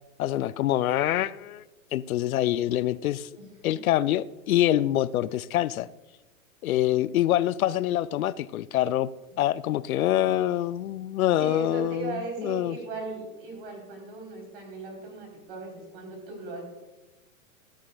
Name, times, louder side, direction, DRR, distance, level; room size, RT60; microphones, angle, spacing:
voice 1, 0.2-1.6 1.9-3.3 3.6-5.9 6.6-9.1 9.4-12.8, left 13 dB, 80° left, 17 dB, 0.5 m, -25 dB
voice 2, 3.3-3.8 11.4-16.6, right 3 dB, 40° right, 1 dB, 3.8 m, -38 dB
14.0 x 12.5 x 2.3 m, 1.1 s
hypercardioid pair, 175°, 42 cm